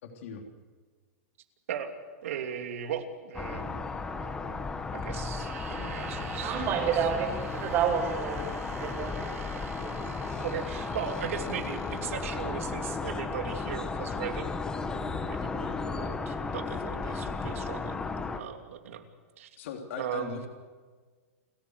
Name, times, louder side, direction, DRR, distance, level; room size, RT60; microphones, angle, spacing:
voice 1, 0.0-0.4 19.6-20.5, left 6 dB, 60° left, 3 dB, 3.3 m, -39 dB
voice 2, 2.2-3.9 4.2-4.7 4.9-7.1 10.4-14.5 15.3-18.0 18.3-19.1 19.4-19.5 20.0-20.4, right 8 dB, 70° right, 6 dB, 2.9 m, -38 dB
sound 1, 3.3-18.4, left 4 dB, 10° left, 1.3 m, -34 dB
sound 2, 5.3-12.5, right 8 dB, 90° right, 3.9 m, -46 dB
voice 3, 6.4-9.3 9.5-10.1, right 7 dB, 30° right, 4 dB, 5.0 m, -30 dB
29.0 x 14.0 x 8.1 m, 1.5 s
supercardioid pair, 160°, 8 cm